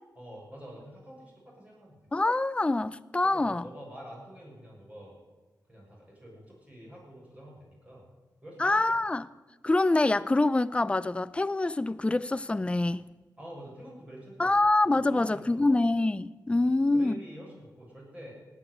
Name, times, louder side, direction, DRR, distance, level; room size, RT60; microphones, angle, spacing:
voice 1, 0.2-2.0 3.2-5.2 5.7-8.1 8.4-9.0 13.4-14.6 15.1-15.8 16.5-18.3, equal, 20° right, 7.1 m, -47 dB
voice 2, 2.1-3.6 8.6-9.3 9.6-13.0 14.4-17.2, left 2 dB, 15° left, 0.5 m, -25 dB
18.5 x 9.3 x 8.1 m
wide cardioid pair, 90°, 7 cm